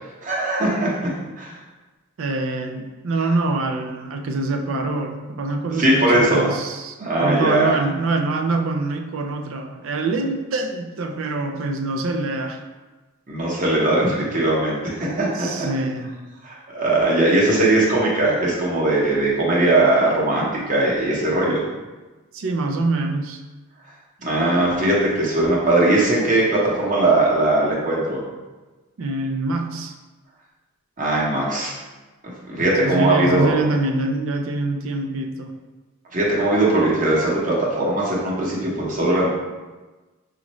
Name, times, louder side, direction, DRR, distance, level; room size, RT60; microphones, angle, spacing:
voice 1, 0.2-0.9 1.4-1.6 5.8-6.5 7.0-7.7 13.3-15.3 15.6-15.7 16.4-21.6 24.2-28.2 31.0-31.7 32.5-33.6 36.1-39.3, right 2 dB, 40° right, -5 dB, 0.9 m, -19 dB
voice 2, 2.2-12.6 15.3-16.2 22.3-23.4 29.0-29.9 32.8-35.5, right 2 dB, 65° right, 4 dB, 0.4 m, -25 dB
5.1 x 2.5 x 3.0 m, 1.2 s
head